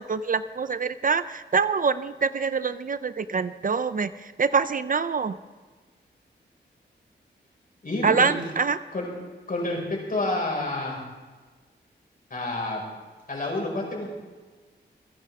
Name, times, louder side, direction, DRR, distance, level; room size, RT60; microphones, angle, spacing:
voice 1, 0.0-4.1 4.4-5.3 8.0-8.8, right 5 dB, 50° right, 13 dB, 0.6 m, -25 dB
voice 2, 7.8-8.4 8.9-9.1 9.5-11.0 12.3-12.8 13.3-14.1, left 2 dB, 50° left, -1 dB, 5.4 m, -29 dB
27.0 x 10.5 x 3.6 m, 1.4 s
wide cardioid pair, 80°, 19 cm